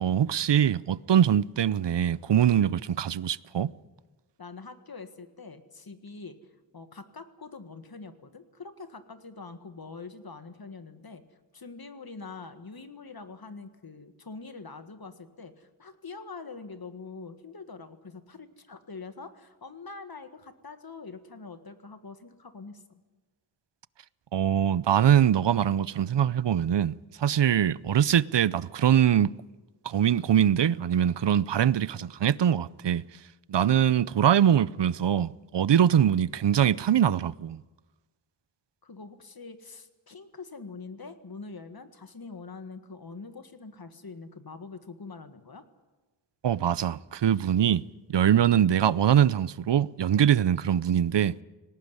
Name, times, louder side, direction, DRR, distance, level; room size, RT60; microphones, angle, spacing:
voice 1, 0.0-3.7 24.3-29.3 29.8-33.0 33.5-37.6 46.4-47.8 48.1-51.4, right 9 dB, 65° right, 0.6 m, -23 dB
voice 2, 4.4-11.2 11.5-23.0 38.8-45.6, left 4 dB, 50° left, 1.7 m, -44 dB
20.0 x 18.5 x 9.7 m
wide cardioid pair, 85°, 46 cm